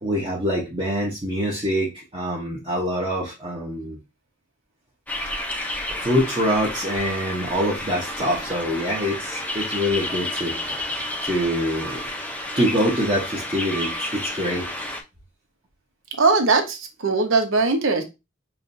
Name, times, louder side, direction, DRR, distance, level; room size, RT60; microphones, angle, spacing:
voice 1, 0.0-4.0 6.0-10.6 11.2-12.0 12.5-14.7, equal, 25° right, -5 dB, 0.9 m, -25 dB
sound 1, 5.1-15.0, left 1 dB, 10° left, 0.5 m, -31 dB
voice 2, 16.2-18.0, right 3 dB, 85° right, 6 dB, 0.8 m, -20 dB
5.6 x 2.2 x 2.6 m, 0.25 s
head